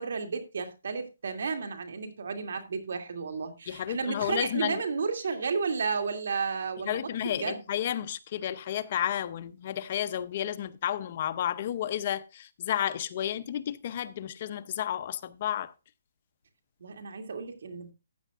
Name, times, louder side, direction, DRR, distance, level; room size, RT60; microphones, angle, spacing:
voice 1, 0.0-7.6 16.8-17.9, right 5 dB, 70° right, 2.4 m, -32 dB
voice 2, 3.7-4.8 6.9-15.7, left 11 dB, 35° left, 0.6 m, -32 dB
14.5 x 9.1 x 2.4 m
hypercardioid pair, 165°, 0 cm